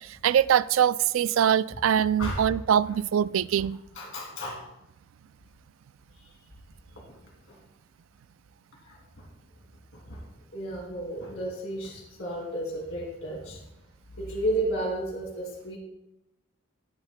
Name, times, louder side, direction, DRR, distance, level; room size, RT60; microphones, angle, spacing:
voice 1, 0.2-3.8, right 9 dB, 70° right, 0.3 m, -23 dB
voice 2, 4.0-4.6 7.0-7.2 7.5-7.6 8.9-9.3 9.9-10.2 10.5-13.6 14.2-15.8, right 1 dB, 65° left, 2.4 m, -33 dB
17.0 x 8.9 x 2.2 m
head